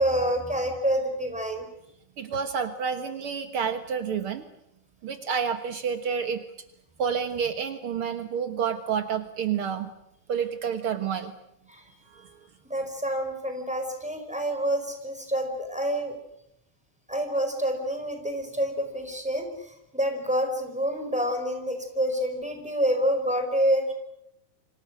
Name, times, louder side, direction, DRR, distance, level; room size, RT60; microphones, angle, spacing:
voice 1, 0.0-1.7 11.7-11.8 12.7-16.2 17.1-23.9, equal, ahead, 5 dB, 4.3 m, -27 dB
voice 2, 2.2-4.4 5.0-6.4 7.0-9.9 10.3-11.3, right 7 dB, 85° right, 8 dB, 1.2 m, -29 dB
29.5 x 26.0 x 6.3 m, 0.81 s
omnidirectional pair, 4.7 m